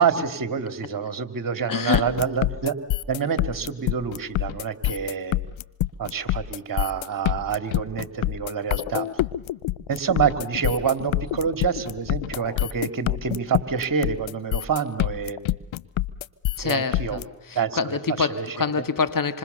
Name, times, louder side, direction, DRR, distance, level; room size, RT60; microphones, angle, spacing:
voice 1, 0.0-2.7 3.1-5.4 6.0-9.1 9.9-15.4 16.6-17.2 17.5-18.5 18.7-18.8, right 6 dB, 45° right, 11 dB, 2.6 m, -27 dB
voice 2, 1.7-2.2 16.6-19.4, left 5 dB, 45° left, 13 dB, 2.0 m, -26 dB
sound 1, 1.9-17.2, left 15 dB, 70° left, 0.8 m, -26 dB
27.0 x 26.0 x 6.9 m, 0.93 s
supercardioid pair, 50°, 48 cm